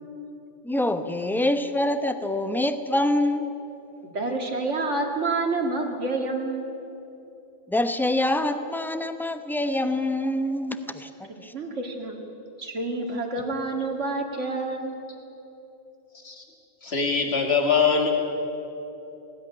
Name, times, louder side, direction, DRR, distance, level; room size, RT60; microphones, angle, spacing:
voice 1, 0.6-3.5 7.7-11.5, left 1 dB, ahead, 9 dB, 0.7 m, -25 dB
voice 2, 4.1-6.7 11.5-12.2 12.6-15.0, right 3 dB, 80° right, 2 dB, 2.2 m, -28 dB
voice 3, 16.8-18.1, left 5 dB, 60° left, 2 dB, 2.6 m, -23 dB
19.5 x 16.0 x 9.9 m, 2.9 s
omnidirectional pair, 1.2 m